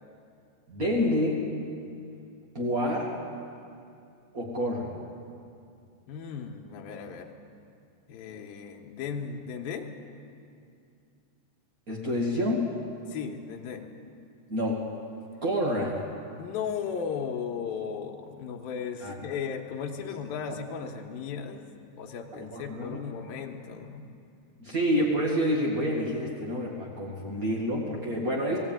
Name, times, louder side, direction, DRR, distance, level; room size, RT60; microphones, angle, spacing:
voice 1, 0.7-1.4 2.5-3.1 4.3-5.0 11.9-12.7 14.5-14.8 15.4-16.0 19.0-19.1 22.3-23.0 24.6-28.6, equal, 55° right, -3 dB, 0.9 m, -28 dB
voice 2, 6.1-7.3 8.1-9.9 13.1-13.9 15.6-15.7 16.4-21.7 22.0-24.0, left 6 dB, 65° left, 2 dB, 2.8 m, -36 dB
20.0 x 16.0 x 9.2 m, 2.5 s
omnidirectional pair, 5.1 m